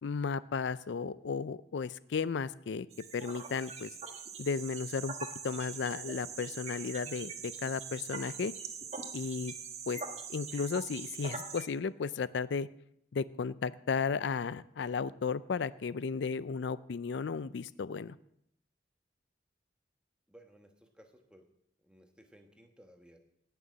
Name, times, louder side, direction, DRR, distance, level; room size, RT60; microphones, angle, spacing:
voice 1, 0.0-2.9 3.1-3.9 4.4-5.1 5.4-8.5 9.1-9.5 9.9-10.0 10.3-12.7 13.1-18.2, left 5 dB, 80° left, 17 dB, 0.4 m, -34 dB
sound 1, 2.9-11.6, right 5 dB, 35° right, 1.5 m, -43 dB
voice 2, 20.3-21.5 21.8-23.2, right 1 dB, 5° right, 4 dB, 1.3 m, -59 dB
18.0 x 6.8 x 6.2 m, 0.76 s
head